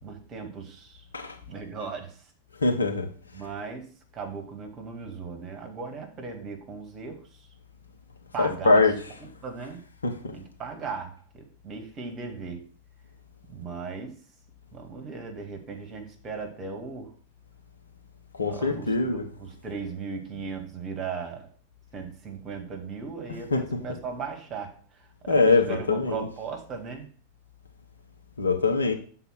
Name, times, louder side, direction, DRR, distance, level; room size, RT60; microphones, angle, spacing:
voice 1, 0.0-1.0 1.5-2.1 3.3-3.9 4.1-7.2 8.3-8.8 9.2-9.8 10.3-12.6 13.5-14.1 14.7-17.1 18.5-21.5 21.9-24.8 25.2-27.1, right 5 dB, 30° right, 1.7 m, -37 dB
voice 2, 2.6-3.1 8.4-8.9 10.0-10.3 18.4-19.2 23.5-23.8 25.3-26.3 28.4-28.9, left 3 dB, 75° left, 1.0 m, -23 dB
6.6 x 4.0 x 6.1 m
figure-of-eight pair, 90°, 0 cm